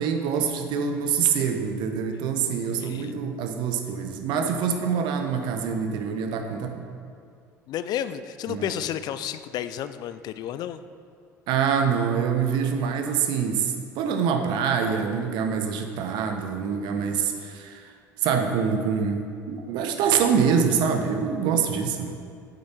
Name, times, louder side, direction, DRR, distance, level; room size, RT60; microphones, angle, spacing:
voice 1, 0.0-6.9 8.5-8.7 11.5-22.1, right 6 dB, 55° right, 5 dB, 0.9 m, -25 dB
voice 2, 2.7-3.3 7.7-10.8, left 10 dB, 50° left, 13 dB, 0.4 m, -32 dB
8.6 x 7.8 x 4.4 m, 2.3 s
figure-of-eight pair, 65°, 9 cm